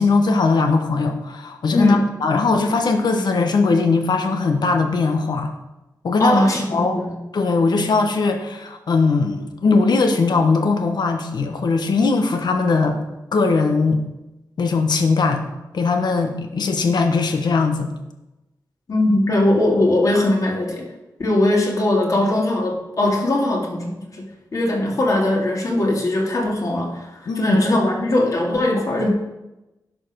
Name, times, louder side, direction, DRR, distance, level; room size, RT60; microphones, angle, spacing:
voice 1, 0.0-5.5 6.0-6.4 6.7-7.0 7.3-13.0 13.3-14.0 14.6-15.4 15.7-17.9 27.3-27.6, left 4 dB, 80° left, 5 dB, 1.2 m, -19 dB
voice 2, 1.7-2.1 6.2-7.1 18.9-20.9 21.2-24.3 24.5-29.1, left 1 dB, 50° left, -1 dB, 2.4 m, -20 dB
10.5 x 5.4 x 6.2 m, 0.99 s
wide cardioid pair, 100°, 7 cm